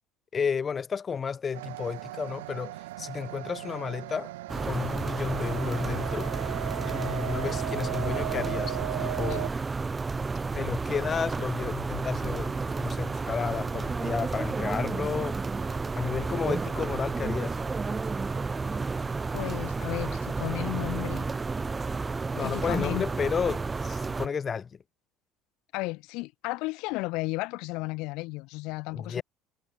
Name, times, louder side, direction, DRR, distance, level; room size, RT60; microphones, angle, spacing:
voice 1, 0.3-4.3 4.6-6.3 6.8-9.6 10.5-15.4 15.9-17.6 22.3-24.8 28.9-29.2, left 6 dB, 35° left, 4.5 m, -32 dB
sound 1, 1.5-9.5, right 18 dB, 75° right, 6.3 m, -37 dB
sound 2, 4.5-24.3, right 4 dB, 25° right, 0.7 m, -31 dB
voice 2, 19.3-21.3 22.4-23.1 25.7-29.2, left 24 dB, 65° left, 5.5 m, -34 dB
hypercardioid pair, 65°, 0 cm